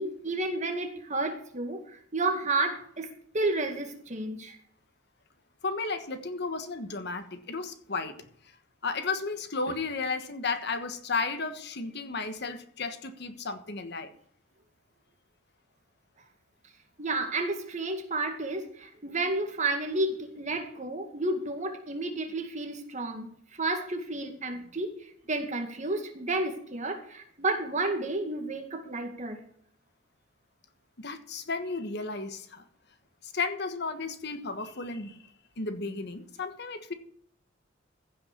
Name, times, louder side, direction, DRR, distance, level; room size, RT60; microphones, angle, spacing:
voice 1, 0.0-3.1 3.3-4.6 17.0-29.4, right 2 dB, 40° right, 4 dB, 2.1 m, -31 dB
voice 2, 5.6-8.2 8.8-14.1 31.0-32.6 33.2-35.2 35.6-36.9, left 4 dB, 60° left, 9 dB, 1.3 m, -33 dB
15.5 x 5.9 x 6.7 m, 0.62 s
head